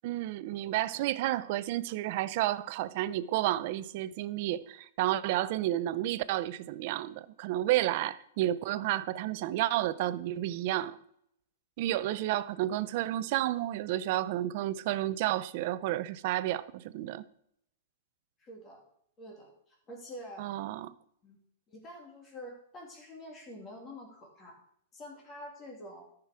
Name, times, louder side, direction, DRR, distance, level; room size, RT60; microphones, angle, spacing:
voice 1, 0.0-11.0 11.8-17.3 20.4-20.9, right 14 dB, 45° right, 0.5 m, -31 dB
voice 2, 18.4-18.8 19.2-20.5 21.2-21.4 21.7-24.6 24.9-26.0, equal, 20° left, 2.4 m, -47 dB
13.5 x 5.9 x 4.8 m
supercardioid pair, 165°, 0 cm